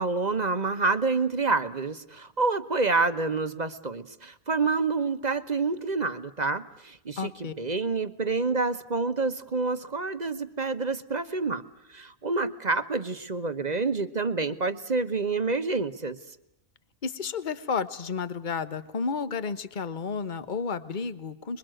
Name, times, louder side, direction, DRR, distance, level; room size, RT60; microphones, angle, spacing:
voice 1, 0.0-11.6 11.9-16.2, right 3 dB, 35° right, 10 dB, 1.1 m, -28 dB
voice 2, 7.2-7.5 17.0-21.6, left 5 dB, 35° left, 13 dB, 1.2 m, -32 dB
26.0 x 23.0 x 7.8 m, 0.82 s
omnidirectional pair, 1.5 m